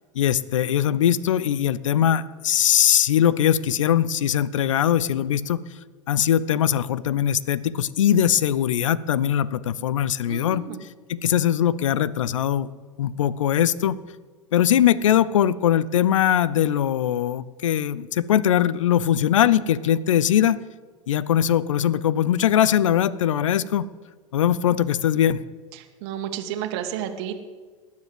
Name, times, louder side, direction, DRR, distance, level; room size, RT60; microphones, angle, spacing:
voice 1, 0.2-5.6 6.1-10.6 11.1-12.7 13.0-14.0 14.5-20.6 21.1-23.9 24.3-25.4, left 10 dB, 70° left, 20 dB, 0.6 m, -21 dB
voice 2, 10.2-10.8 25.7-27.4, right 10 dB, 55° right, 6 dB, 1.7 m, -32 dB
20.0 x 7.5 x 7.8 m, 1.4 s
figure-of-eight pair, 85°, 17 cm